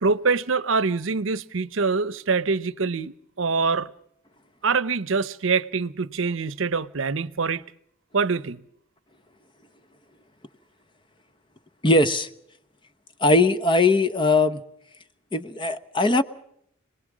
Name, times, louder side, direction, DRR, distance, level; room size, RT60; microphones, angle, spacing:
voice 1, 0.0-3.9 4.6-7.6 8.1-8.6, right 4 dB, 70° right, 0.8 m, -24 dB
voice 2, 11.8-12.3 13.2-14.6 15.3-16.2, left 2 dB, 25° left, 1.0 m, -20 dB
26.5 x 20.0 x 6.2 m
head